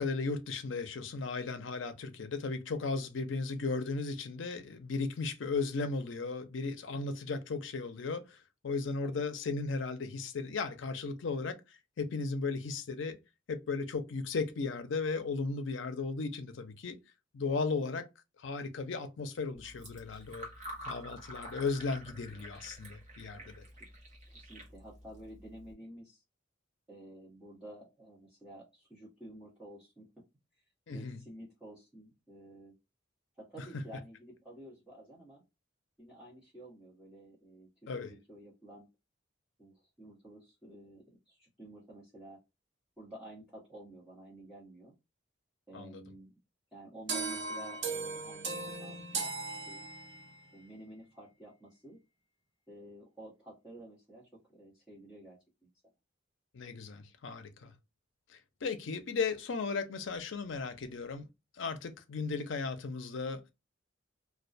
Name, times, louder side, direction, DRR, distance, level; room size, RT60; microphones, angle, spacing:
voice 1, 0.0-13.2 13.5-17.0 17.3-18.1 18.4-20.5 20.8-23.6 30.9-31.2 37.9-38.1 45.7-46.0 56.5-57.7 58.3-61.3 61.5-63.5, left 4 dB, 70° left, 0.5 m, -36 dB
Fill (with liquid), 19.5-25.7, equal, 35° right, 0.9 m, -48 dB
voice 2, 24.3-26.2 26.9-30.2 30.9-32.7 33.4-35.4 36.0-38.9 39.6-42.4 43.0-44.9 45.7-46.3 46.7-49.8 50.5-52.0 52.7-55.7, right 1 dB, 5° right, 0.9 m, -51 dB
sound 1, 47.1-50.4, right 4 dB, 60° right, 0.7 m, -37 dB
2.3 x 2.2 x 2.5 m
head